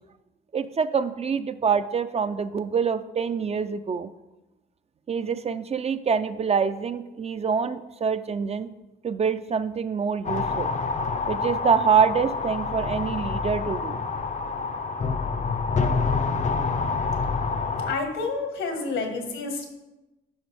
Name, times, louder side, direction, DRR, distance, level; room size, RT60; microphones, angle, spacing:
voice 1, 0.5-4.1 5.1-8.7 9.0-10.7 11.3-14.0, right 6 dB, 30° right, 11 dB, 0.4 m, -25 dB
sound 1, 10.2-18.0, left 4 dB, 35° left, 0.6 m, -27 dB
voice 2, 17.9-19.7, left 3 dB, 80° left, 4 dB, 1.6 m, -29 dB
10.0 x 5.7 x 3.4 m, 1.0 s
cardioid pair, 90°, 20 cm